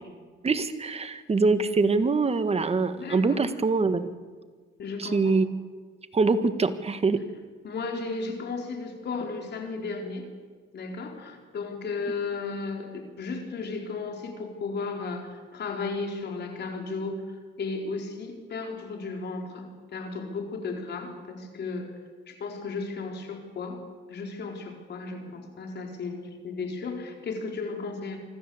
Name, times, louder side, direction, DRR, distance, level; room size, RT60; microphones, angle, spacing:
voice 1, 0.4-4.1 5.0-5.5 6.1-7.2, right 4 dB, 30° right, 11 dB, 1.6 m, -24 dB
voice 2, 2.9-3.4 4.8-5.4 7.6-10.3 10.7-19.7 19.9-21.9 22.3-23.8 24.1-28.2, left 4 dB, 60° left, 3 dB, 4.3 m, -34 dB
25.0 x 13.5 x 8.0 m, 1.4 s
cardioid pair, 90°, 20 cm